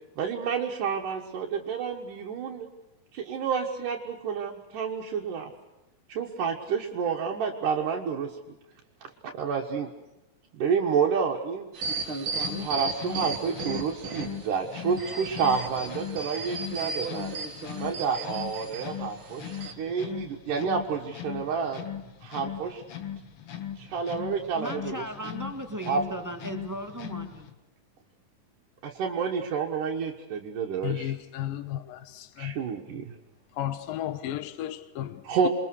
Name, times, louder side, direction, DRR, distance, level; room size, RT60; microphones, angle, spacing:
voice 1, 0.2-2.7 3.1-5.5 6.1-8.4 9.0-9.9 10.5-11.7 12.6-17.4 17.8-21.8 22.2-22.8 23.8-24.9 25.9-26.0 28.8-31.1 32.4-33.1 35.2-35.5, right 6 dB, 70° right, 3.0 m, -29 dB
sound 1, 11.7-14.5 14.9-18.8 19.4-19.7, right 3 dB, 40° right, 2.8 m, -35 dB
sound 2, 12.3-27.5, left 10 dB, 50° left, 2.2 m, -39 dB
voice 2, 24.6-27.5, right 1 dB, 20° right, 0.4 m, -37 dB
voice 3, 30.8-32.6 33.5-35.5, left 12 dB, 80° left, 2.9 m, -34 dB
28.0 x 22.5 x 6.5 m
omnidirectional pair, 4.0 m